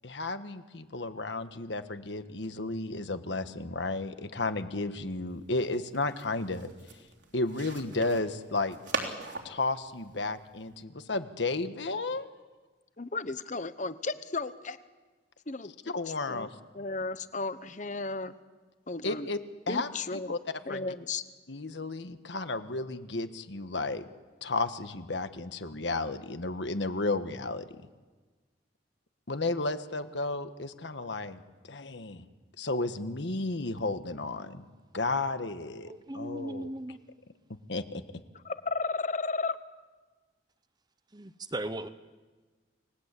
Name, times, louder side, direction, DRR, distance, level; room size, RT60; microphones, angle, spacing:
voice 1, 0.0-6.7 7.3-8.8 9.4-12.3 15.9-16.5 19.0-19.4 19.7-20.9 21.5-24.0 24.4-27.8 29.3-31.4 31.7-32.2 32.6-34.7 34.9-36.7 37.7-38.0, left 2 dB, 70° left, 10 dB, 1.4 m, -33 dB
sound 1, 5.3-10.8, right 3 dB, 75° right, 3.6 m, -41 dB
voice 2, 13.0-14.8 15.5-15.7 16.1-16.5 16.7-18.3 18.9-19.3 19.7-20.3 20.7-21.2 38.4-39.6, left 3 dB, 40° left, 13 dB, 1.0 m, -34 dB
voice 3, 35.9-37.0 41.1-41.9, right 1 dB, 20° right, 12 dB, 0.9 m, -37 dB
29.0 x 20.0 x 8.4 m, 1.3 s
head